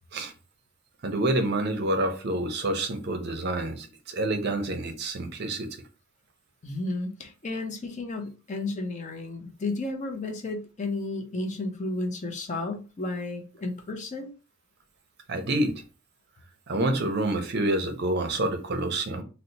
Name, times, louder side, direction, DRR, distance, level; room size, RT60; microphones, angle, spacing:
voice 1, 1.0-5.7 15.3-15.8 16.7-19.2, right 1 dB, 50° right, 0.6 m, -27 dB
voice 2, 6.6-14.3, left 2 dB, 35° left, 0.5 m, -33 dB
2.7 x 2.0 x 4.0 m
head